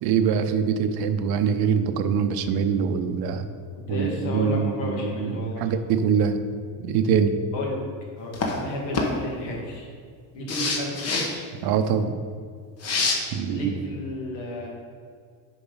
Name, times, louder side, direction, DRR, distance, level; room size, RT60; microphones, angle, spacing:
voice 1, 0.0-3.4 3.9-6.4 6.8-7.4 11.6-12.1 13.3-13.7, right 7 dB, 65° right, 9 dB, 0.7 m, -23 dB
voice 2, 3.9-5.7 7.5-7.8 8.2-9.9 10.3-11.4 13.5-14.7, left 1 dB, 80° left, -1 dB, 2.1 m, -32 dB
sound 1, 8.3-8.6 8.9-9.1 10.5-11.3 12.8-13.2, left 3 dB, 35° left, 1.0 m, -25 dB
6.9 x 4.6 x 5.5 m, 2.1 s
cardioid pair, 155°, 42 cm